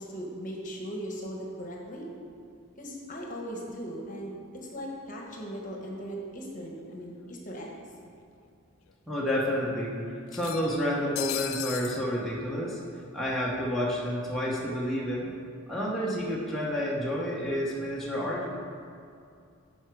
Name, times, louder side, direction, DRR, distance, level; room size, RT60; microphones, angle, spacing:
voice 1, 0.0-2.1 2.8-7.8, equal, 40° left, -1 dB, 1.1 m, -38 dB
sound 1, 6.9-7.0 7.3-7.4 8.4-8.5 8.9-9.0 10.3-12.0, left 13 dB, 75° left, 0.4 m, -37 dB
voice 2, 9.1-12.8 13.1-15.3 15.7-18.6, equal, ahead, -6 dB, 0.9 m, -30 dB
11.0 x 4.6 x 4.7 m, 2.4 s
head